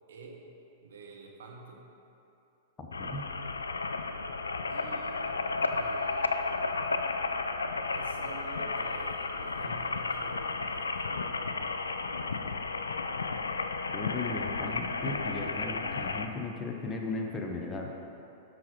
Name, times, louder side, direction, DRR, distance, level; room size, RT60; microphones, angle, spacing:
voice 1, 0.1-0.4 0.8-1.8 4.7-5.4 5.7-6.5 7.9-11.0, right 4 dB, 70° right, 0 dB, 1.2 m, -48 dB
voice 2, 2.8-3.3 13.9-17.9, left 3 dB, 20° left, 1 dB, 0.9 m, -36 dB
sound 1, 2.9-16.3, left 4 dB, 80° left, 0.4 m, -33 dB
11.5 x 6.0 x 3.1 m, 2.8 s
figure-of-eight pair, 100°, 0 cm